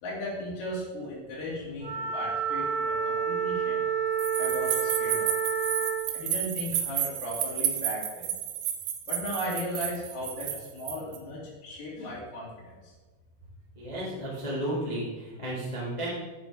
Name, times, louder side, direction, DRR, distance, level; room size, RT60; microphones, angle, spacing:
voice 1, 0.0-3.8 4.4-5.3 6.1-8.3 9.1-12.9, left 1 dB, 55° left, -6 dB, 3.9 m, -36 dB
Wind instrument woodwind instrument, 1.8-6.1, right 6 dB, 30° right, 2.6 m, -29 dB
sound 1, 4.2-11.2, right 10 dB, 85° right, 3.0 m, -31 dB
voice 2, 13.7-16.1, right 1 dB, 85° left, -7 dB, 0.3 m, -33 dB
7.2 x 7.1 x 5.0 m, 1.3 s
omnidirectional pair, 5.0 m